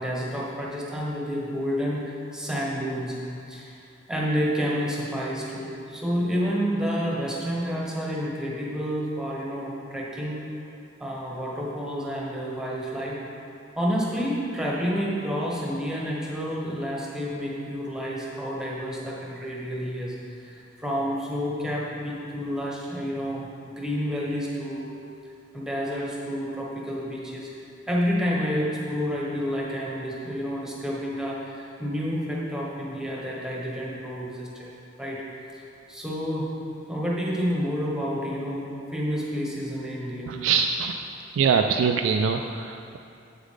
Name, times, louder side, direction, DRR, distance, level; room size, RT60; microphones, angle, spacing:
voice 1, 0.0-3.2 3.5-3.8 4.1-10.4 11.0-13.2 13.8-24.9 25.5-27.5 27.9-34.7 35.0-35.2 35.5-35.6 35.9-36.5 36.9-40.3, equal, 5° right, -5 dB, 1.1 m, -29 dB
voice 2, 40.3-40.9 41.3-43.0, right 6 dB, 85° right, 5 dB, 0.3 m, -23 dB
8.1 x 6.9 x 3.7 m, 2.6 s
head